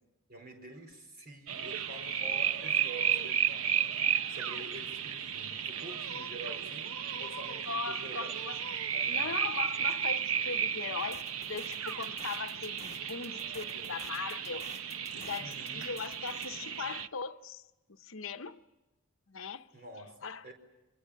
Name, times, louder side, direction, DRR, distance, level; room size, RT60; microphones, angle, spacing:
voice 1, 0.3-8.4 8.9-9.4 15.4-16.0 19.7-20.5, right 1 dB, 45° right, 4.5 m, -48 dB
sound 1, 1.5-17.1, right 8 dB, 70° right, 0.8 m, -34 dB
voice 2, 7.7-8.6 9.1-11.2 11.5-14.6 15.1-17.6 17.9-18.6 19.3-19.7 20.2-20.4, left 5 dB, 65° left, 0.9 m, -39 dB
sound 2, 11.0-16.5, left 7 dB, 30° left, 1.4 m, -52 dB
29.0 x 25.0 x 6.5 m
head